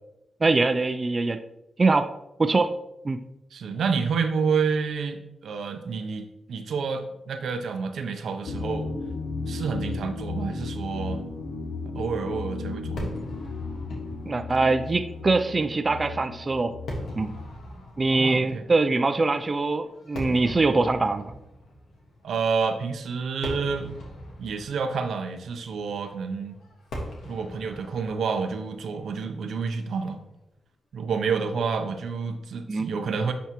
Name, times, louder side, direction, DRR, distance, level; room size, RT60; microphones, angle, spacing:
voice 1, 0.4-1.4 1.8-2.1 2.4-2.7 3.0-3.2 14.3-16.7 17.2-17.3 18.0-21.3 32.7-32.9, right 3 dB, 35° right, 8 dB, 0.4 m, -23 dB
voice 2, 3.5-8.9 9.4-11.2 11.9-13.1 18.1-18.6 22.2-23.9 24.4-26.5 27.2-30.2 30.9-33.3, right 5 dB, 80° right, 7 dB, 0.6 m, -29 dB
sound 1, 8.5-17.5, left 3 dB, 70° left, 0.5 m, -34 dB
Fireworks, 13.0-30.3, equal, 90° left, 1.5 m, -41 dB
10.0 x 3.4 x 2.9 m, 0.89 s
cardioid pair, 70°, 0 cm